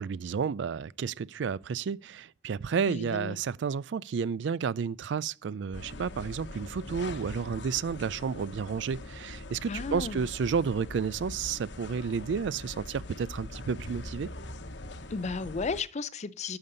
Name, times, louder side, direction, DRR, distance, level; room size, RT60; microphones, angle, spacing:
voice 1, 0.0-14.3, right 6 dB, 70° right, 0.4 m, -31 dB
voice 2, 2.9-3.4 9.7-10.2 15.1-16.6, left 4 dB, 40° left, 0.5 m, -34 dB
sound 1, 5.7-15.8, left 2 dB, 70° left, 1.0 m, -42 dB
11.0 x 6.8 x 3.9 m
head